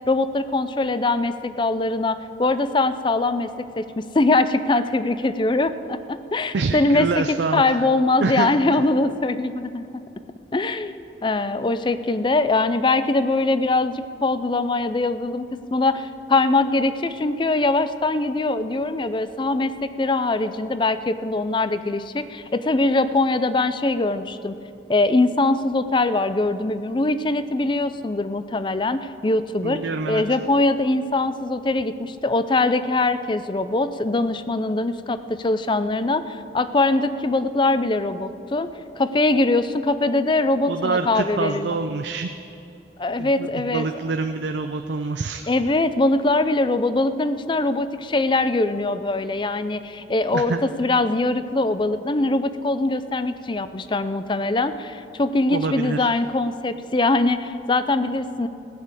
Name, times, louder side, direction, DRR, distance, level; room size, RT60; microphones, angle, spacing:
voice 1, 0.1-9.9 10.5-24.6 24.9-29.8 30.1-38.7 39.0-41.7 43.0-43.8 45.5-58.5, left 2 dB, 25° left, 12 dB, 0.4 m, -22 dB
voice 2, 6.5-7.9 8.2-8.8 29.6-30.2 40.7-42.3 43.2-45.5 50.3-50.6 55.5-56.1, right 3 dB, 75° right, 6 dB, 0.5 m, -26 dB
15.5 x 6.7 x 8.2 m, 2.7 s
head